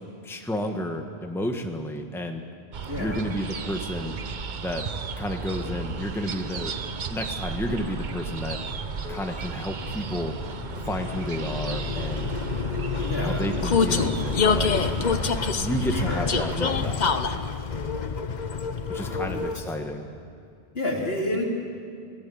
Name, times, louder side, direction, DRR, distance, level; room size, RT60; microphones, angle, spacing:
voice 1, 0.2-2.4 3.0-4.1 4.6-4.8 5.2-6.8 7.1-8.6 9.1-10.3 10.9-12.3 13.2-14.7 15.5-17.2 18.9-20.1, equal, ahead, 4 dB, 1.4 m, -31 dB
sound 1, 2.7-16.6, right 5 dB, 50° right, 0.9 m, -35 dB
voice 2, 2.9-3.2 13.0-13.5 15.9-16.3 18.9-19.4 20.7-21.4, left 1 dB, 70° left, -1 dB, 3.5 m, -30 dB
Vehicle, 8.0-19.9, left 5 dB, 45° left, 1.0 m, -27 dB
26.5 x 18.0 x 8.6 m, 2.4 s
omnidirectional pair, 1.1 m